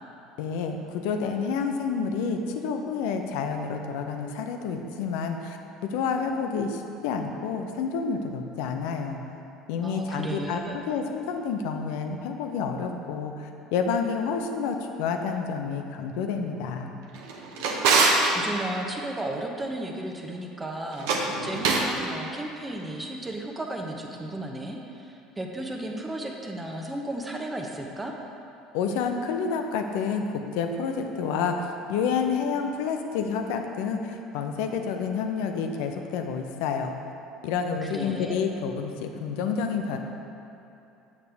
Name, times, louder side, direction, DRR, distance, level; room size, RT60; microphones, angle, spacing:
voice 1, 0.4-5.6 5.9-9.2 9.7-16.9 28.7-36.9 37.4-40.0, left 5 dB, 75° left, 5 dB, 0.6 m, -29 dB
voice 2, 9.8-10.8 18.3-28.1 37.8-38.4, right 1 dB, 20° right, 1 dB, 0.9 m, -34 dB
Drawer open or close, 17.1-18.3 20.9-21.9, right 4 dB, 75° right, 0.8 m, -23 dB
7.2 x 6.6 x 3.4 m, 2.9 s
hypercardioid pair, 80°, 0 cm